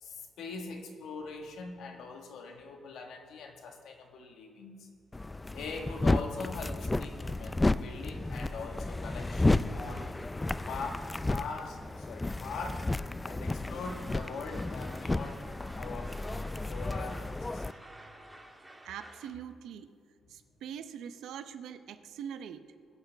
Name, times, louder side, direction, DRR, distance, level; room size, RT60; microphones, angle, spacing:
voice 1, 0.0-4.9 5.5-10.1 10.6-12.9 13.2-15.5 15.8-16.2 16.7-17.8, left 4 dB, 75° left, 3 dB, 1.6 m, -42 dB
sound 1, 5.1-17.7, left 2 dB, 15° left, 0.3 m, -32 dB
sound 2, 13.8-19.3, right 1 dB, 10° right, 1.6 m, -52 dB
voice 2, 18.8-19.9 20.3-22.6, right 8 dB, 80° right, 10 dB, 0.7 m, -43 dB
21.0 x 8.6 x 3.5 m, 2.2 s
cardioid pair, 90°, 0 cm